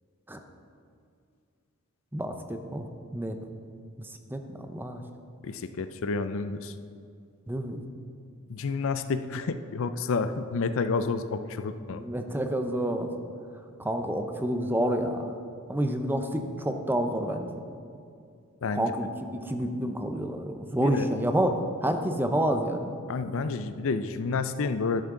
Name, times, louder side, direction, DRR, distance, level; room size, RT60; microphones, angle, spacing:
voice 1, 2.1-3.4 4.0-5.0 7.5-7.8 11.9-13.1 13.8-15.3 15.7-17.6 18.7-22.9, right 1 dB, 10° right, 6 dB, 0.6 m, -29 dB
voice 2, 5.4-6.7 8.5-12.0 18.6-18.9 20.8-21.1 23.1-25.1, left 4 dB, 65° left, 11 dB, 0.5 m, -30 dB
12.0 x 10.5 x 3.8 m, 2.4 s
head